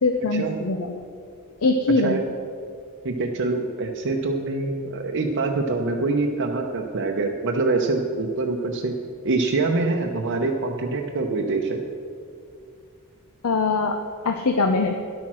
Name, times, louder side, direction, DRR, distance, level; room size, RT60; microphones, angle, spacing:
voice 1, 0.0-1.0 1.6-2.2 13.4-14.0 14.2-14.9, left 3 dB, 70° left, 6 dB, 0.6 m, -22 dB
voice 2, 3.0-8.9 9.2-11.8, right 3 dB, 60° right, 1 dB, 0.8 m, -25 dB
11.0 x 8.7 x 6.1 m, 2.4 s
head